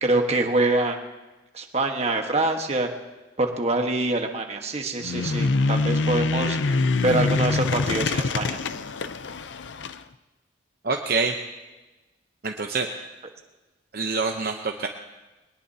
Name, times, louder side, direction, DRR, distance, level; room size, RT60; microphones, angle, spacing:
voice 1, 0.0-1.0 1.5-2.9 3.4-8.6, right 2 dB, 35° right, 3 dB, 1.4 m, -25 dB
sound 1, 5.0-10.0, left 3 dB, 75° left, 0.6 m, -25 dB
voice 2, 10.8-11.4 12.4-12.9 13.9-14.9, right 4 dB, 55° right, 3 dB, 0.8 m, -26 dB
21.5 x 19.5 x 2.8 m, 1.1 s
head